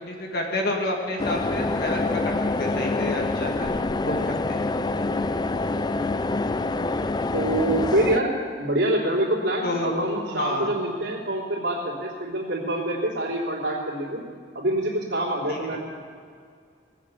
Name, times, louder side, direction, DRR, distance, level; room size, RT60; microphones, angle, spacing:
voice 1, 0.0-3.7 4.0-4.7 9.6-9.9 10.3-10.7 15.5-15.8, left 1 dB, 55° left, 1 dB, 2.1 m, -29 dB
sound 1, 1.2-8.2, left 2 dB, 25° left, 0.4 m, -26 dB
voice 2, 7.3-14.2 14.5-15.8, right 1 dB, 75° right, -4 dB, 3.3 m, -26 dB
18.0 x 7.5 x 8.4 m, 2.2 s
head